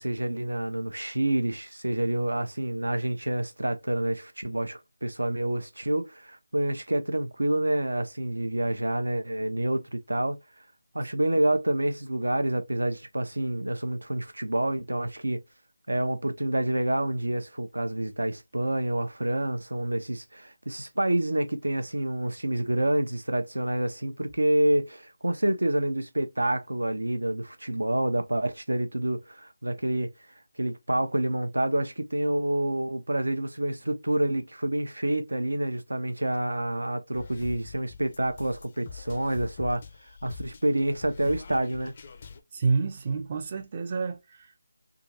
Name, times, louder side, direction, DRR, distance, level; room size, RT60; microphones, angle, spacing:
voice 1, 0.0-10.4 10.9-15.4 15.9-30.1 30.6-39.8 40.2-41.9, right 1 dB, 85° right, 0.8 m, -28 dB
sound 1, 37.1-42.4, left 5 dB, 35° left, 0.5 m, -44 dB
voice 2, 42.5-44.6, right 4 dB, 30° right, 0.5 m, -29 dB
3.7 x 2.4 x 2.8 m
figure-of-eight pair, 165°, 0 cm